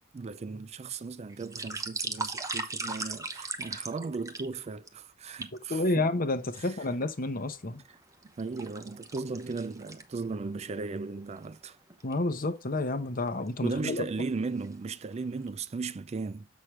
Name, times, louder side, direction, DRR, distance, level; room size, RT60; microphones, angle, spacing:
voice 1, 0.0-6.1 6.6-6.8 8.4-11.8 13.6-16.5, right 4 dB, 30° right, 0.4 m, -36 dB
sound 1, 1.3-4.9 5.4-5.6 6.3-7.1 7.6-10.4 10.8-10.9 11.3-11.5 11.9-12.1 13.0-13.5 14.0-14.2 14.5-15.1 15.5-15.6, right 3 dB, 15° right, 0.9 m, -38 dB
voice 2, 5.7-7.8 12.0-14.0, left 2 dB, 45° left, 1.0 m, -30 dB
7.5 x 6.2 x 3.2 m
head